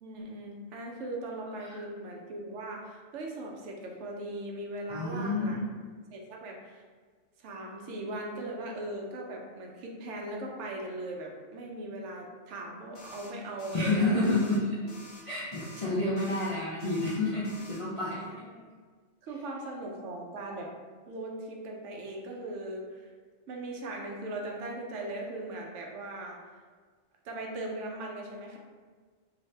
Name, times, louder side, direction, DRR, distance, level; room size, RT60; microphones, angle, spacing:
voice 1, 0.0-5.6 6.1-6.8 7.4-14.4 15.8-16.0 18.3-18.6 19.2-20.7 21.1-23.1 23.5-26.6 27.2-28.6, right 1 dB, 80° right, 0 dB, 0.9 m, -39 dB
voice 2, 4.9-5.9 13.7-14.6 15.3-18.3, left 2 dB, 50° left, -9 dB, 0.4 m, -29 dB
sound 1, 12.9-13.3 13.6-13.9 14.2-14.6 14.9-15.2 15.5-15.9 16.2-16.5 16.8-17.2 17.4-17.8, equal, 85° left, 1.0 m, -50 dB
2.8 x 2.5 x 3.1 m, 1.5 s
omnidirectional pair, 1.2 m